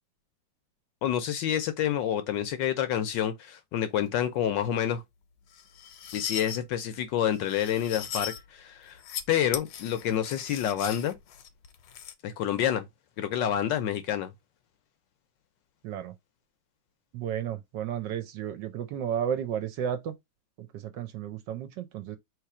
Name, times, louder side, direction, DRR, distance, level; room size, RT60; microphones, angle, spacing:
voice 1, 1.0-5.0 6.1-9.0 9.3-11.1 12.2-12.8 13.2-14.3, left 10 dB, 75° left, 1.2 m, -28 dB
sound 1, 5.5-6.6 7.3-8.4 8.9-9.2 9.5-12.1, left 9 dB, 90° left, 1.6 m, -38 dB
voice 2, 15.8-16.1 17.1-20.1 20.6-22.2, right 9 dB, 70° right, 1.2 m, -33 dB
3.3 x 3.2 x 4.7 m
omnidirectional pair, 2.2 m